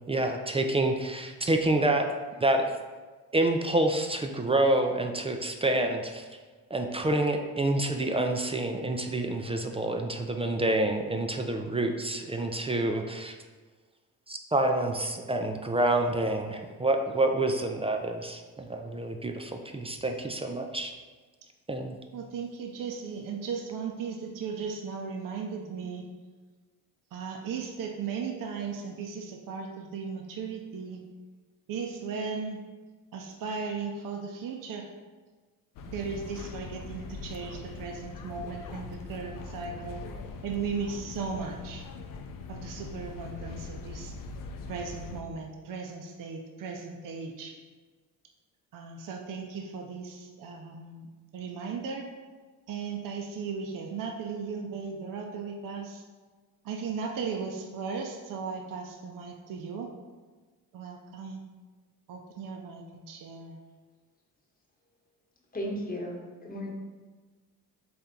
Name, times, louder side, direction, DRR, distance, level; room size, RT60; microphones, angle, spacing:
voice 1, 0.0-2.1 2.4-2.7 3.3-6.2 6.7-13.4 14.3-20.9 21.7-22.0, right 2 dB, 15° right, 4 dB, 0.3 m, -28 dB
voice 2, 22.1-26.1 27.1-31.0 31.7-32.6 33.1-34.9 35.9-40.1 40.4-41.9 42.5-44.1 44.7-47.6 48.7-52.1 52.7-56.0 56.6-59.9 60.7-61.4 62.1-63.6, right 5 dB, 50° right, 2 dB, 0.6 m, -36 dB
sound 1, 35.8-45.2, left 4 dB, 50° left, 0.5 m, -42 dB
voice 3, 65.5-66.7, equal, 20° left, -1 dB, 1.2 m, -35 dB
4.3 x 3.3 x 3.7 m, 1.4 s
supercardioid pair, 70°, 41 cm